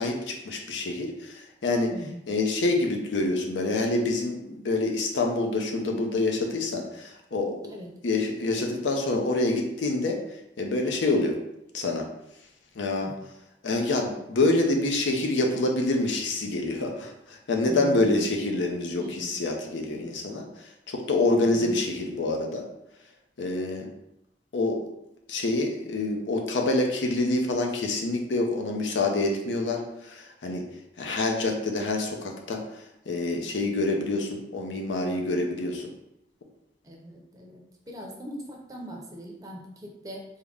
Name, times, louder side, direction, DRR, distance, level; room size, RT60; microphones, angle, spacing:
voice 1, 0.0-1.9 2.3-7.7 8.0-10.2 10.6-11.4 11.7-12.1 12.8-13.1 13.6-20.5 20.9-22.6 23.4-23.9 24.5-24.8 25.3-30.6 31.0-32.6 33.1-35.9, left 2 dB, 85° left, 2 dB, 0.6 m, -26 dB
voice 2, 1.9-2.2 7.7-7.9 13.0-13.1 17.7-18.4 19.0-19.3 21.5-21.9 36.8-40.2, equal, 20° right, -1 dB, 0.5 m, -40 dB
3.6 x 2.1 x 3.5 m, 0.84 s
head